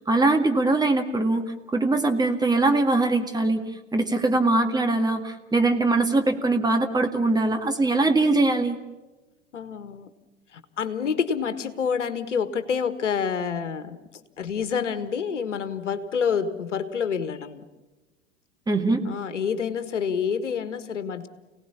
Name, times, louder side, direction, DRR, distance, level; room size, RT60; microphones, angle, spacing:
voice 1, 0.1-1.4 1.7-3.6 3.9-8.8 18.7-19.0, right 2 dB, 10° right, 5 dB, 2.0 m, -22 dB
voice 2, 9.5-10.1 10.5-14.0 14.4-17.6 19.1-21.3, left 6 dB, 70° left, 12 dB, 1.7 m, -28 dB
29.5 x 18.0 x 7.1 m, 1.1 s
figure-of-eight pair, 85°, 37 cm